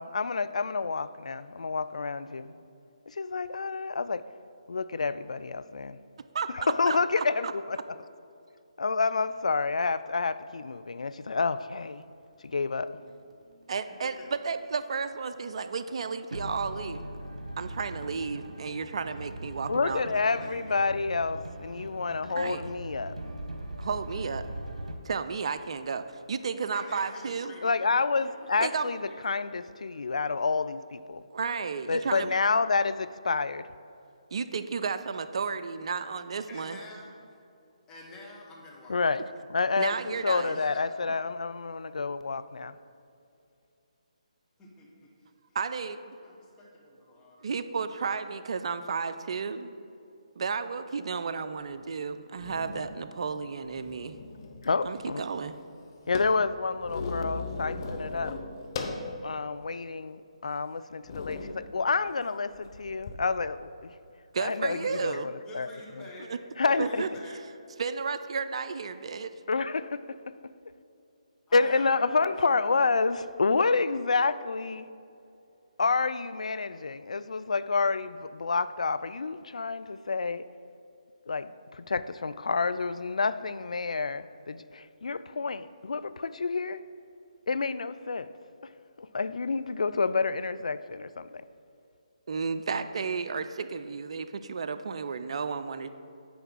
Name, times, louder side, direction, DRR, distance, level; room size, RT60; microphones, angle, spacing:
voice 1, 0.0-2.6 3.1-4.3 4.7-6.0 6.5-7.8 8.8-12.0 12.5-13.0 19.7-23.2 27.6-31.2 31.9-33.7 38.9-39.2 39.5-42.8 54.6-55.2 56.1-58.4 59.2-63.9 64.4-65.7 66.6-67.0 69.5-70.5 71.5-74.9 75.8-80.5 81.3-86.8 87.5-88.3 89.0-91.4, left 4 dB, 70° left, 0.3 m, -29 dB
voice 2, 6.3-7.5 13.7-14.1 14.4-17.0 17.6-20.1 22.3-22.6 23.8-24.4 25.0-27.5 28.6-28.9 31.3-32.3 34.3-36.8 39.8-40.6 45.5-46.2 47.4-49.7 50.4-54.2 54.8-55.6 64.3-65.3 66.2-66.4 66.8-67.1 67.8-69.3 92.3-95.9, right 5 dB, 55° right, 0.4 m, -33 dB
sound 1, 11.6-24.9, right 1 dB, 85° right, 1.0 m, -42 dB
voice 3, 20.0-20.8 26.7-29.2 36.5-37.2 37.9-39.2 39.7-40.1 40.4-41.0 44.6-45.1 46.2-47.5 47.9-48.0 65.5-66.3 66.6-67.3 71.5-71.9 72.3-72.4, left 1 dB, 15° left, 1.3 m, -48 dB
sound 2, 51.7-51.8 52.4-53.0 53.6-54.7 55.0-55.1 55.3-59.1 59.6-59.7 60.4-60.6 61.0-61.6 62.5-63.1, left 3 dB, 40° left, 0.8 m, -37 dB
9.4 x 3.3 x 6.3 m
figure-of-eight pair, 145°, 4 cm